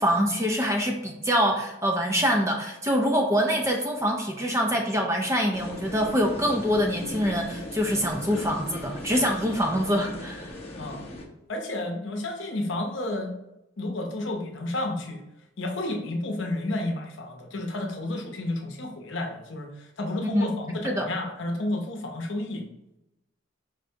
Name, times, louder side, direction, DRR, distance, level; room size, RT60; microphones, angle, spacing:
voice 1, 0.0-10.5 20.3-20.5 20.8-21.1, equal, 15° right, 2 dB, 0.4 m, -25 dB
sound 1, 5.5-11.3, left 1 dB, 30° left, 0.6 m, -38 dB
voice 2, 11.5-13.3 13.8-15.2 15.6-22.7, left 1 dB, 65° left, 2 dB, 0.7 m, -31 dB
5.0 x 3.3 x 2.7 m, 0.92 s
head